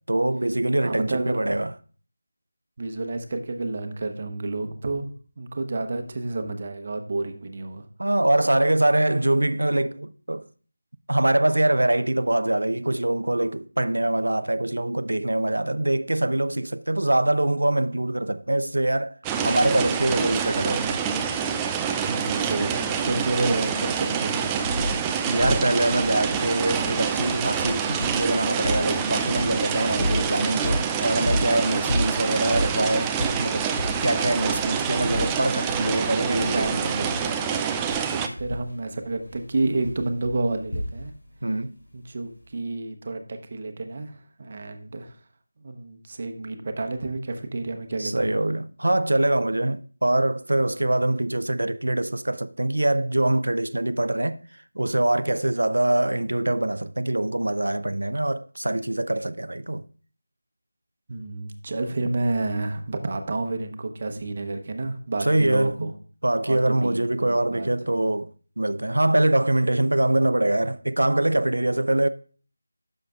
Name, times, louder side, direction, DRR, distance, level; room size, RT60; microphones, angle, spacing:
voice 1, 0.1-1.7 8.0-10.5 11.1-19.2 19.4-21.0 25.3-33.7 34.0-37.0 41.4-41.7 48.0-54.4 54.8-59.8 65.3-65.9 66.2-68.3 68.6-72.1, right 1 dB, 80° right, 0.5 m, -24 dB
voice 2, 0.8-1.4 2.8-7.9 22.1-24.9 36.1-37.7 38.1-41.1 41.9-45.1 45.6-48.4 61.1-65.9 66.4-67.7, right 2 dB, 40° right, 0.9 m, -30 dB
raindrops hit on roofs, 19.2-38.3, right 7 dB, 10° right, 0.3 m, -27 dB
sound 1, 23.3-23.4 23.7-25.1 25.4-41.4 42.4-42.5, left 1 dB, 75° left, 3.0 m, -32 dB
10.5 x 6.5 x 2.4 m
figure-of-eight pair, 170°, 0 cm